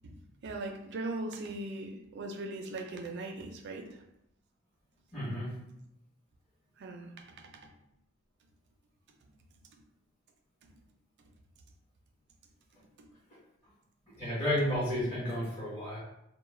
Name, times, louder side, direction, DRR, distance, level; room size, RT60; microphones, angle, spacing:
voice 1, 0.0-4.0 6.8-7.7 9.2-9.3 9.6-9.8 10.6-10.8 11.2-11.3 13.0-13.1, right 2 dB, 55° right, 3 dB, 0.4 m, -40 dB
voice 2, 5.1-5.5 14.2-16.0, equal, 30° left, -11 dB, 1.0 m, -32 dB
2.3 x 2.1 x 3.1 m, 0.81 s
head